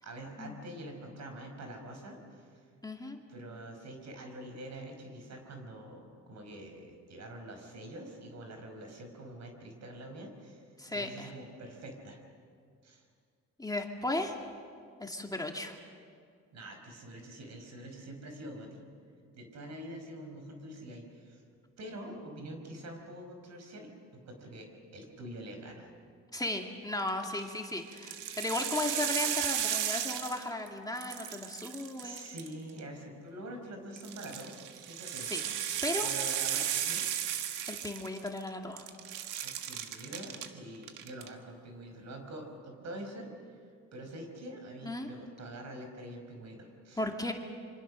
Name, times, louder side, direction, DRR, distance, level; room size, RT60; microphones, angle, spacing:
voice 1, 0.0-2.6 3.3-12.2 12.8-13.1 16.5-18.8 19.3-21.4 21.8-25.9 32.0-35.3 36.0-37.1 39.4-43.6 43.9-47.0, right 1 dB, 60° right, 4 dB, 5.3 m, -45 dB
voice 2, 2.8-3.2 10.8-11.3 13.6-14.4 15.0-15.8 26.3-32.3 35.2-35.5 35.8-36.1 37.7-38.9 44.8-45.1 47.0-47.3, left 2 dB, 10° left, 2 dB, 2.2 m, -35 dB
sound 1, 27.1-27.4 27.9-30.7 31.0-32.8 34.0-38.5 38.8-40.5 40.8-41.3, right 10 dB, 90° right, 1.5 m, -35 dB
26.5 x 25.0 x 6.4 m, 2.2 s
cardioid pair, 90°, 30 cm